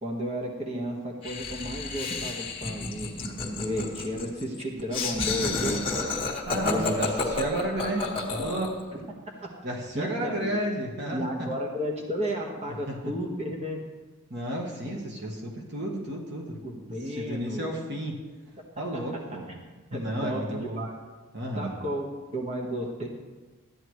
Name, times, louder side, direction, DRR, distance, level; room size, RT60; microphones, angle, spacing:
voice 1, 0.0-5.8 6.6-7.3 8.9-9.0 9.9-10.5 11.1-13.8 14.8-14.9 16.6-17.8 18.9-19.0 19.9-20.9 21.5-22.1 22.3-23.1, equal, 30° right, -1 dB, 1.4 m, -33 dB
Laughter, 1.2-8.8, left 4 dB, 25° left, 1.6 m, -31 dB
voice 2, 6.4-8.8 9.6-11.5 12.9-13.0 14.3-16.6 17.0-18.2 18.8-19.4 19.9-20.9 21.3-21.7, right 1 dB, 50° right, -1 dB, 1.3 m, -32 dB
13.5 x 9.9 x 3.2 m, 1.3 s
head